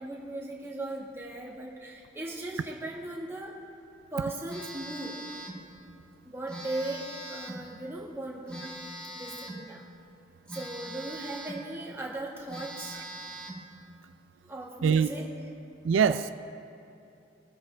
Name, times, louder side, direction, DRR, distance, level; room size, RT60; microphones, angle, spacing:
voice 1, 0.0-3.6 4.1-5.3 6.2-8.8 9.1-9.8 10.5-13.1 14.4-15.2, right 2 dB, 15° right, 1.6 m, -38 dB
Telephone, 4.5-5.6 6.5-7.7 8.5-9.7 10.5-11.7 12.1-12.2 12.5-13.7, right 1 dB, 5° left, 1.6 m, -42 dB
voice 2, 15.8-16.3, right 6 dB, 90° right, 0.4 m, -23 dB
22.5 x 8.0 x 3.4 m
head